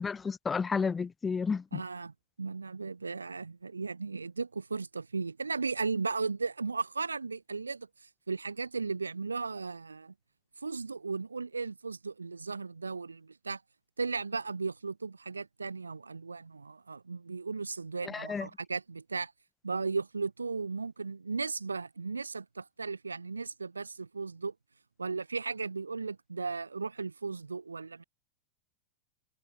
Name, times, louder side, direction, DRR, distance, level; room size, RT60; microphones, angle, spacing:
voice 1, 0.0-1.8 18.1-18.5, left 5 dB, 15° left, 3.7 m, -32 dB
voice 2, 1.7-7.9 8.3-10.1 10.6-13.6 14.0-19.3 19.6-24.5 25.0-28.0, right 4 dB, 75° right, 7.4 m, -36 dB
open air
figure-of-eight pair, 90°, 0 cm